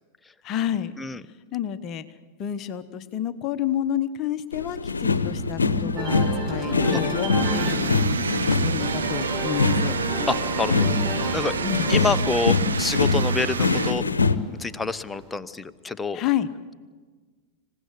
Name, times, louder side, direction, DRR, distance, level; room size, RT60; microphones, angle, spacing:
voice 1, 0.4-0.9 1.5-2.0 2.4-8.2 8.6-10.0 11.6-11.9 16.1-16.5, left 10 dB, 35° left, 12 dB, 1.0 m, -29 dB
sound 1, 4.5-14.4, left 3 dB, 75° left, 0.9 m, -24 dB
sound 2, 5.9-15.3, right 2 dB, 30° right, 5.4 m, -33 dB
sound 3, 7.4-13.9, right 6 dB, 70° right, 1.0 m, -29 dB
voice 2, 10.3-11.0 11.3-11.5 11.9-14.0 14.6-16.2, left 4 dB, 10° left, 13 dB, 0.8 m, -27 dB
26.5 x 16.5 x 8.0 m, 1.5 s
figure-of-eight pair, 90°, 0 cm